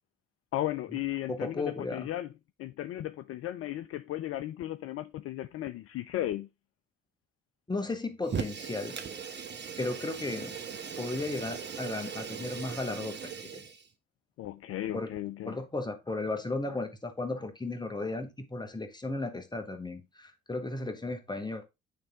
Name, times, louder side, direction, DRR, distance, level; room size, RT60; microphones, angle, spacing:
voice 1, 0.5-2.3 2.6-6.5 14.4-15.6, left 14 dB, 50° left, 0.5 m, -35 dB
voice 2, 1.3-2.1 7.7-9.0 9.8-10.5 11.0-13.6 14.9-15.1 15.4-21.6, left 2 dB, 15° left, 1.5 m, -35 dB
Fire, 8.2-13.9, right 6 dB, 35° right, 1.1 m, -39 dB
9.0 x 3.3 x 3.6 m
hypercardioid pair, 45°, 30 cm